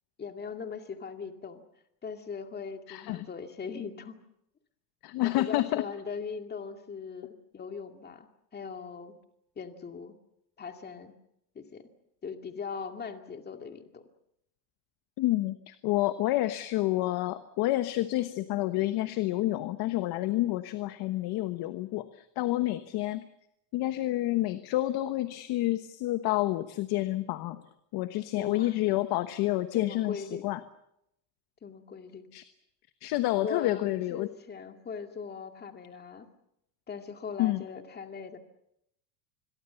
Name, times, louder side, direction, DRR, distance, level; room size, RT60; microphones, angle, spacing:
voice 1, 0.2-1.6 2.0-4.2 5.2-8.3 8.5-9.2 9.6-10.1 10.6-11.1 11.5-11.9 12.2-14.0 28.4-28.7 29.7-30.5 31.6-32.2 33.4-36.3 36.9-38.4, left 5 dB, 20° left, 6 dB, 2.2 m, -40 dB
voice 2, 2.9-3.2 5.0-5.8 15.2-23.2 23.7-27.6 27.9-30.6 32.3-32.4 33.0-34.3 37.4-37.6, left 16 dB, 50° left, 11 dB, 1.2 m, -29 dB
26.5 x 22.5 x 7.0 m, 0.80 s
supercardioid pair, 140°, 49 cm